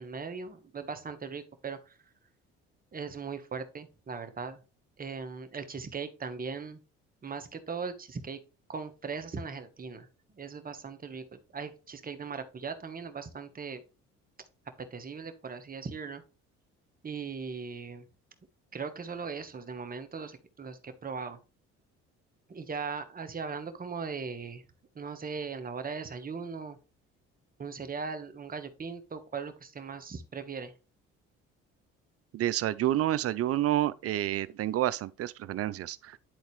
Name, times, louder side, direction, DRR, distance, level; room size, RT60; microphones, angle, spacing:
voice 1, 0.0-2.0 2.9-4.6 5.0-6.8 7.2-8.4 8.7-10.1 10.3-13.8 14.9-16.2 17.0-18.0 18.7-21.4 22.5-24.6 24.9-26.8 27.6-30.7, right 5 dB, 30° right, 1.2 m, -39 dB
voice 2, 32.3-36.2, right 13 dB, 55° right, 0.5 m, -29 dB
10.5 x 4.0 x 3.1 m
supercardioid pair, 70°, 29 cm